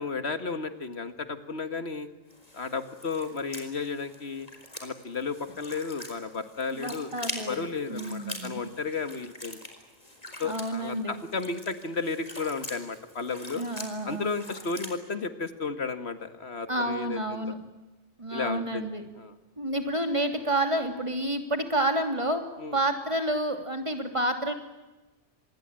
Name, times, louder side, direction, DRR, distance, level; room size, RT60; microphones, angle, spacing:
voice 1, 0.0-2.1 2.5-4.5 4.8-7.1 7.5-9.6 10.4-13.6 14.0-17.5 18.3-18.9 19.2-19.4 22.6-22.8, left 4 dB, 70° left, 10 dB, 1.9 m, -33 dB
sound 1, 2.3-15.0, left 1 dB, 35° left, 4.3 m, -44 dB
voice 2, 6.7-8.6 10.4-11.1 13.6-14.3 16.7-17.6 18.2-19.0 19.6-22.4 22.7-24.5, right 1 dB, 25° right, 6 dB, 3.1 m, -29 dB
26.5 x 21.0 x 8.9 m, 1.1 s
omnidirectional pair, 1.1 m